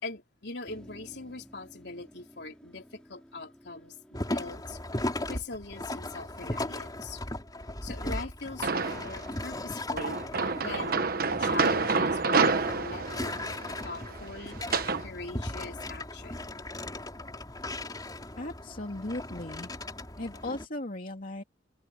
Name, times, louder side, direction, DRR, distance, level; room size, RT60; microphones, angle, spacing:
voice 1, 0.0-7.2 7.8-10.2 10.6-11.1 11.4-13.3 13.8-14.6 15.0-16.4, left 3 dB, 65° left, 3.8 m, -42 dB
Motor vehicle (road), 0.6-9.6, equal, 5° left, 6.9 m, -57 dB
sound 1, 4.1-20.7, left 1 dB, 20° left, 4.0 m, -37 dB
sound 2, 8.6-9.2 10.0-15.0, right 4 dB, 55° right, 1.2 m, -28 dB
voice 2, 18.4-19.7 20.2-21.4, left 1 dB, 50° left, 2.6 m, -37 dB
open air
head